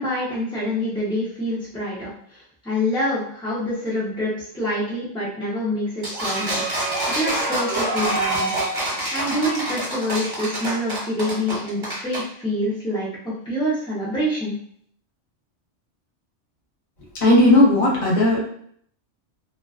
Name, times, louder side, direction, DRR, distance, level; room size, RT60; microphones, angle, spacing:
voice 1, 0.0-6.6 7.1-8.5 9.1-14.6, equal, 5° left, -10 dB, 0.4 m, -26 dB
sound 1, 6.0-12.2, right 1 dB, 25° right, 0.7 m, -26 dB
voice 2, 17.2-18.4, left 1 dB, 40° left, -4 dB, 0.8 m, -15 dB
2.3 x 2.3 x 2.3 m, 0.64 s
omnidirectional pair, 1.2 m